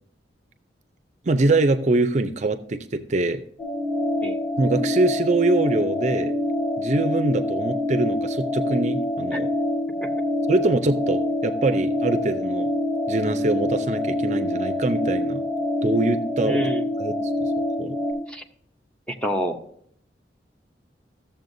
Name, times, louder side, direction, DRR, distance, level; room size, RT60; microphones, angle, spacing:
voice 1, 1.2-3.4 4.6-6.3 6.8-9.5 10.5-12.7 13.1-15.4 15.8-16.7 17.0-17.1 17.4-17.5 17.8-18.0, right 2 dB, 40° right, 9 dB, 0.5 m, -23 dB
sound 1, 3.6-18.1, left 1 dB, 25° left, 3.0 m, -26 dB
voice 2, 16.4-16.8 18.3-18.4 19.1-19.6, equal, 5° left, 4 dB, 0.7 m, -27 dB
14.5 x 7.1 x 2.6 m, 0.65 s
head